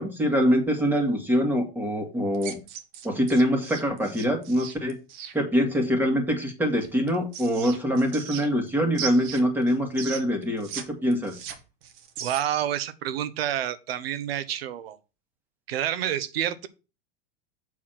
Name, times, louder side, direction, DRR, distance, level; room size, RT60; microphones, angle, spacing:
voice 1, 0.0-2.6 3.0-5.0 5.3-11.4, equal, 5° right, 2.1 m, -24 dB
sound 1, 2.3-5.3 6.8-8.7 8.9-10.8 11.1-12.6, right 8 dB, 60° right, 1.6 m, -37 dB
voice 2, 12.2-15.0 15.7-16.7, right 11 dB, 90° right, 1.0 m, -28 dB
7.5 x 4.0 x 5.9 m
supercardioid pair, 135°, 29 cm